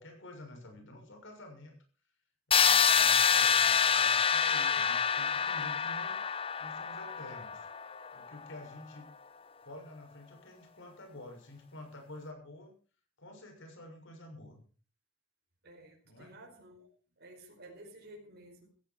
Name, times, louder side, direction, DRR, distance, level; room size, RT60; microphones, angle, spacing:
voice 1, 0.0-1.7 2.5-6.2 6.6-7.7 8.1-9.1 9.6-12.7 13.2-14.6 16.0-16.3, left 1 dB, 65° left, 4 dB, 6.6 m, -49 dB
sound 1, 2.5-8.3, left 7 dB, 25° left, 0.9 m, -27 dB
voice 2, 15.6-18.7, right 1 dB, 55° right, 0 dB, 5.0 m, -53 dB
16.5 x 15.5 x 4.5 m, 0.38 s
head